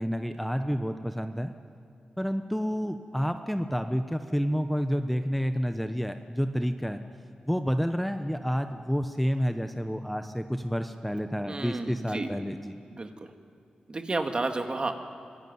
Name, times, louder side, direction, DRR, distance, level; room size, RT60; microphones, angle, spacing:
voice 1, 0.0-1.5 2.2-7.0 7.5-12.7, equal, ahead, 8 dB, 0.9 m, -29 dB
voice 2, 11.5-12.3 12.9-13.3 13.9-15.0, right 2 dB, 40° right, 5 dB, 2.0 m, -31 dB
25.0 x 16.5 x 9.5 m, 2.4 s
cardioid pair, 65°, 3 cm